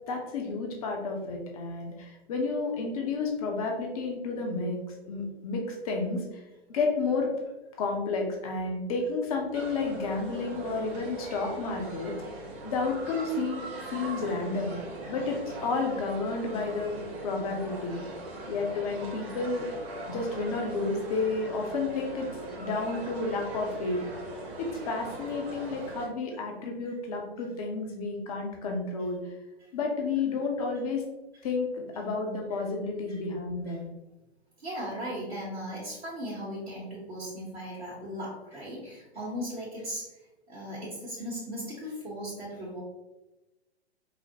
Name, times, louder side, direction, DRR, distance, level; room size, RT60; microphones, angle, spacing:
voice 1, 0.1-4.8 5.1-6.4 6.7-7.4 7.8-12.1 12.6-14.8 15.1-16.9 17.2-18.0 18.5-19.7 20.1-22.3 22.6-24.0 24.6-29.3 29.7-31.0 31.4-33.9, left 3 dB, 35° left, 1 dB, 0.6 m, -31 dB
sound 1, 9.5-26.1, right 2 dB, 30° right, 0.8 m, -40 dB
voice 2, 34.6-40.1 40.5-42.8, equal, 70° right, -7 dB, 1.1 m, -37 dB
4.8 x 2.0 x 2.7 m, 1.0 s
figure-of-eight pair, 115°, 32 cm